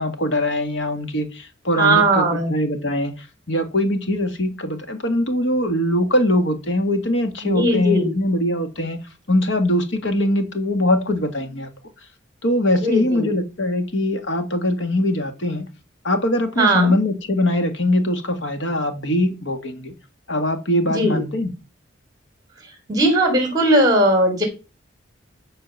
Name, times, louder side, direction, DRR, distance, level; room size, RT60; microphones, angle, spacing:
voice 1, 0.0-9.0 9.3-11.7 12.4-15.7 16.0-19.9 20.3-21.5, left 1 dB, 65° left, 1.8 m, -22 dB
voice 2, 1.8-2.5 7.4-8.1 12.8-13.3 16.6-16.9 20.8-21.2 22.9-24.4, right 1 dB, 20° right, 3.5 m, -18 dB
11.5 x 4.4 x 7.0 m
head